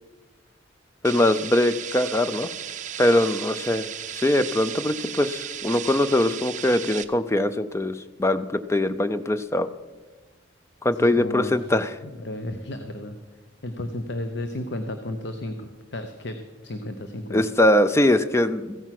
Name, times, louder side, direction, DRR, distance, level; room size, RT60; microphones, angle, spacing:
voice 1, 1.0-2.5 3.0-9.7 10.8-11.9 17.3-18.8, left 1 dB, 15° left, 12 dB, 0.4 m, -22 dB
sound 1, 1.0-7.0, right 10 dB, 40° right, 0.6 m, -35 dB
voice 2, 10.9-11.7 12.0-13.2 13.6-16.4 16.6-17.4, left 1 dB, 60° left, 7 dB, 0.8 m, -33 dB
15.0 x 9.2 x 5.9 m, 1.3 s
head